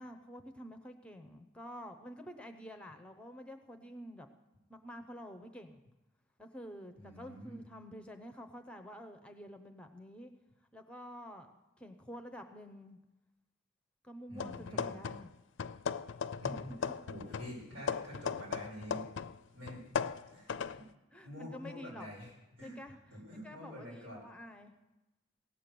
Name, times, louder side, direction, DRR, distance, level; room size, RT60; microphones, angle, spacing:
voice 1, 0.0-4.3 4.7-5.8 6.4-10.3 10.7-13.0 14.0-15.3 16.5-16.6 18.1-18.2 20.6-20.8 21.1-22.1 22.6-23.0 23.4-24.7, equal, 5° left, 7 dB, 0.7 m, -49 dB
voice 2, 6.9-7.6 14.3-15.0 16.4-19.1 19.5-20.8 21.2-24.2, equal, 90° right, -4 dB, 6.7 m, -47 dB
sound 1, 14.4-15.3 15.6-19.4 19.7-20.8, left 6 dB, 75° left, 0.4 m, -38 dB
17.0 x 7.6 x 6.8 m, 1.0 s
head